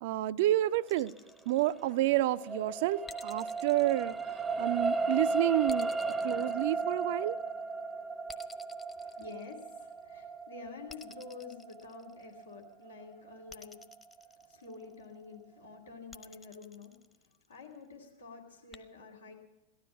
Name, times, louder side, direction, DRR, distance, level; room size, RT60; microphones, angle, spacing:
voice 1, 0.0-1.1 1.5-4.2 4.6-5.9 6.2-7.4, right 15 dB, 50° right, 15 dB, 0.5 m, -29 dB
sound 1, 0.9-2.3 3.1-4.9 5.7-7.4 8.3-10.0 10.9-12.5 13.5-15.0 16.1-17.6 18.7-18.8, left 3 dB, 15° left, 1.1 m, -53 dB
sound 2, 1.7-14.2 14.7-14.8, right 3 dB, 15° right, 0.7 m, -35 dB
voice 2, 8.9-13.8 14.4-16.9 17.2-19.3, left 4 dB, 75° left, 0 dB, 2.7 m, -49 dB
18.0 x 12.5 x 5.9 m, 1.0 s
figure-of-eight pair, 90°, 0 cm